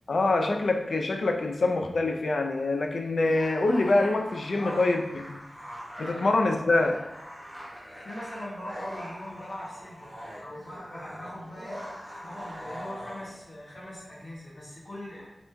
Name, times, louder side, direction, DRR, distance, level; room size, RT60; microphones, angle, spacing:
voice 1, 0.1-5.4 6.0-7.1, left 2 dB, 75° left, 4 dB, 0.4 m, -25 dB
sound 1, 3.2-13.4, equal, 15° right, 1.1 m, -42 dB
voice 2, 4.5-4.9 6.0-6.2 8.0-11.8 12.2-15.3, left 1 dB, 45° left, -7 dB, 1.3 m, -41 dB
5.1 x 3.0 x 2.2 m, 0.97 s
wide cardioid pair, 70°, 0 cm